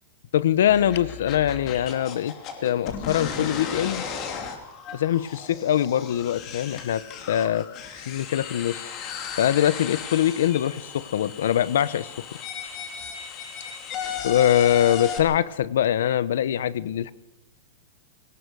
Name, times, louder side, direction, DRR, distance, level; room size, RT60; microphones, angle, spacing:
voice 1, 0.3-2.3 2.6-4.0 4.9-7.0 7.3-7.7 8.0-12.2 14.2-17.1, left 10 dB, 75° left, 17 dB, 1.1 m, -23 dB
sound 1, 0.7-15.2, left 7 dB, 25° left, 2.9 m, -35 dB
23.5 x 18.5 x 6.4 m, 0.94 s
supercardioid pair, 175°, 0 cm